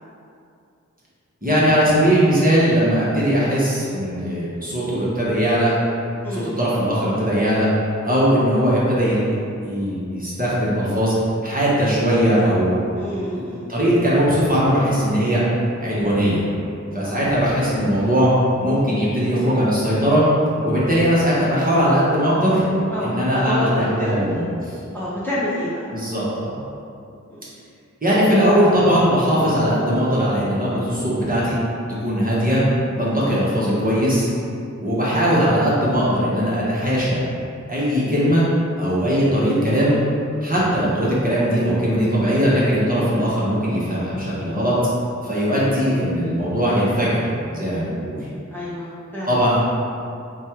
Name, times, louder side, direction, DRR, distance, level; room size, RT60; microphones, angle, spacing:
voice 1, 1.4-5.7 6.3-7.7 8.0-9.3 9.6-11.1 11.4-12.8 13.7-15.4 15.8-16.4 16.9-18.3 18.6-20.2 20.6-22.6 23.0-24.8 25.9-26.6 28.0-31.6 32.0-32.6 33.0-34.3 34.8-37.2 37.7-38.4 38.8-40.0 40.4-44.7 45.2-47.2 47.5-48.2 49.3-49.6, equal, 30° right, -8 dB, 1.0 m, -19 dB
voice 2, 6.2-6.6 13.0-13.7 17.0-17.2 22.9-24.2 24.9-25.8 27.3-27.4 33.1-33.3 45.5-45.7 48.5-49.4, left 1 dB, 5° left, -9 dB, 0.7 m, -28 dB
3.2 x 2.3 x 4.3 m, 2.5 s
wide cardioid pair, 45°, 30 cm